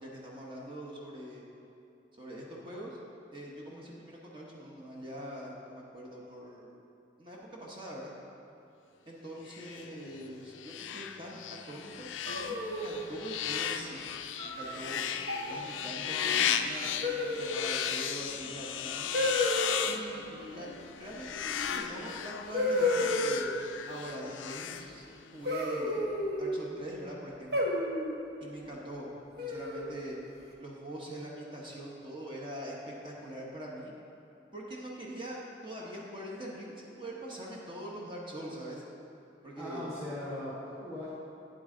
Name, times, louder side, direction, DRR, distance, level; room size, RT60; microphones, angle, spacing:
voice 1, 0.0-1.4 2.2-3.0 3.3-6.7 7.2-8.1 9.1-14.0 14.4-15.1 15.5-19.1 19.8-23.5 23.9-25.1 25.3-26.1 26.4-27.7 28.4-29.1 29.4-30.2 30.6-33.9 34.5-38.8 39.4-39.9, right 1 dB, 25° right, -3 dB, 1.0 m, -43 dB
sound 1, 9.5-25.4, left 8 dB, 90° left, 0.4 m, -36 dB
sound 2, 12.3-13.1 14.4-14.8 15.2-15.6 17.0-17.7 19.1-19.7 21.7-21.8 22.5-23.5 25.5-26.5 27.5-28.2 29.4-30.0, left 1 dB, 55° right, 1.1 m, -31 dB
voice 2, 39.6-41.1, left 1 dB, 10° right, -9 dB, 1.4 m, -39 dB
9.0 x 7.8 x 3.8 m, 2.7 s
head